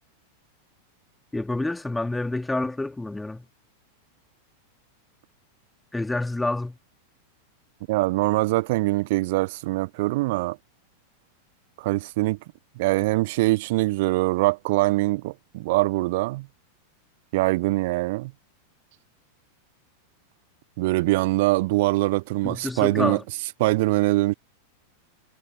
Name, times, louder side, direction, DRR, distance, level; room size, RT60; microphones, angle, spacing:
voice 1, 1.3-3.4 5.9-6.8 22.4-23.2, left 2 dB, 5° left, 2.4 m, -28 dB
voice 2, 7.9-10.6 11.8-12.4 12.8-16.5 17.3-18.3 20.8-23.2 23.6-24.3, right 21 dB, 50° right, 0.8 m, -23 dB
figure-of-eight pair, 90°, 0 cm